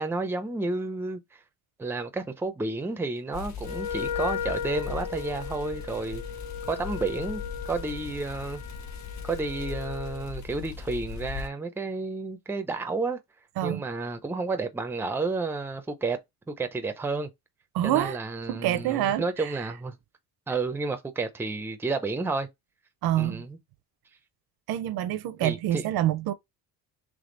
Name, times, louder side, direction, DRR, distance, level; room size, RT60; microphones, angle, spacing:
voice 1, 0.0-1.4 1.8-6.2 6.7-8.6 9.2-13.2 13.6-16.2 16.5-17.3 17.8-20.0 20.5-22.5 23.2-23.6 25.4-25.8, right 3 dB, 5° right, 0.5 m, -31 dB
sound 1, 3.3-11.5, left 6 dB, 45° left, 1.4 m, -39 dB
Wind instrument woodwind instrument, 3.6-10.3, left 7 dB, 70° left, 0.8 m, -36 dB
voice 2, 17.7-18.2 18.5-19.5 23.0-23.5 24.7-26.3, right 12 dB, 75° right, 0.6 m, -27 dB
3.5 x 3.2 x 3.8 m
cardioid pair, 140°, 38 cm